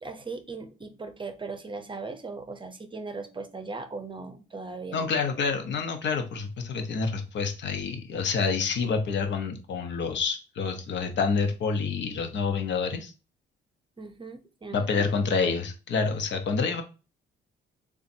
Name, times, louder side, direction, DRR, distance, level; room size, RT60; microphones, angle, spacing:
voice 1, 0.0-5.1 14.0-15.3, right 3 dB, 25° right, 9 dB, 0.7 m, -39 dB
voice 2, 4.9-13.1 14.7-16.8, left 5 dB, 65° left, 6 dB, 0.9 m, -28 dB
6.8 x 2.4 x 2.7 m, 0.32 s
cardioid pair, 90°, 20 cm